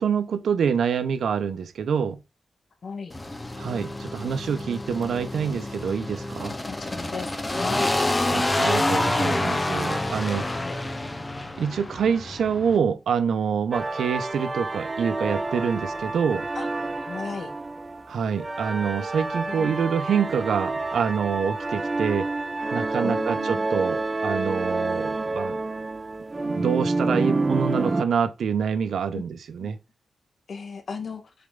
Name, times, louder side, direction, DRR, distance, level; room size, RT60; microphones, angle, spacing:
voice 1, 0.0-2.2 3.6-6.5 8.3-10.5 11.6-16.5 18.1-22.3 22.7-25.6 26.4-29.8, right 7 dB, 90° right, 0.9 m, -26 dB
voice 2, 2.8-3.1 6.7-7.9 10.3-10.7 16.5-16.7 17.1-17.5 19.5-19.8 23.0-23.7 29.1-29.2 29.6-29.7 30.5-31.3, left 5 dB, 50° left, 1.7 m, -36 dB
sound 1, 3.1-12.8, left 2 dB, 20° left, 0.9 m, -28 dB
sound 2, 13.7-28.0, right 3 dB, 25° right, 0.6 m, -28 dB
6.9 x 4.5 x 3.8 m
wide cardioid pair, 140°, 0 cm